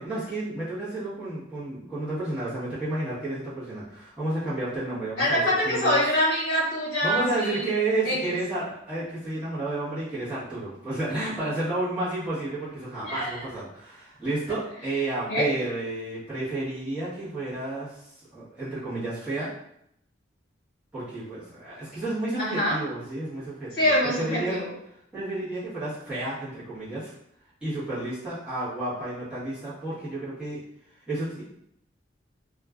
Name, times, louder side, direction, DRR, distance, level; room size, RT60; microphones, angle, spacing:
voice 1, 0.0-6.0 7.0-19.5 20.9-24.6 25.1-27.1 27.6-30.6 31.1-31.4, right 2 dB, 5° right, -13 dB, 1.0 m, -31 dB
voice 2, 5.2-7.7 8.0-8.2 13.0-13.4 15.3-15.5 22.4-22.7 23.7-24.7, left 1 dB, 65° left, -8 dB, 1.1 m, -24 dB
2.4 x 2.2 x 2.3 m, 0.75 s
head